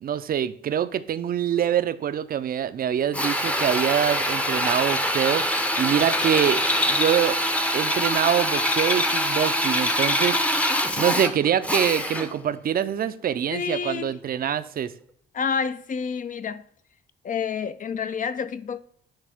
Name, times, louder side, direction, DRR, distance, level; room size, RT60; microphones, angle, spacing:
voice 1, 0.0-5.4 5.8-6.6 6.9-7.4 7.7-10.7 11.0-14.9, right 9 dB, 50° right, 0.5 m, -25 dB
Drill, 3.1-12.4, equal, 5° left, 0.7 m, -24 dB
voice 2, 13.5-14.1 15.3-16.6 17.2-18.8, left 6 dB, 40° left, 0.5 m, -29 dB
9.8 x 3.3 x 3.5 m
cardioid pair, 90°, 20 cm